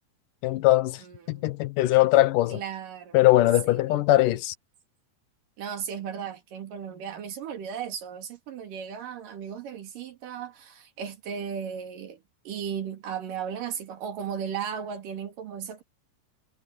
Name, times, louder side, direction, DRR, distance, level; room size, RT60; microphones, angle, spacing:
voice 1, 0.4-1.0 1.3-2.6 3.1-4.5, left 16 dB, 75° left, 2.5 m, -21 dB
voice 2, 1.0-1.5 2.5-3.2 3.7-4.0 5.6-15.8, right 7 dB, 75° right, 3.9 m, -36 dB
omnidirectional pair, 3.9 m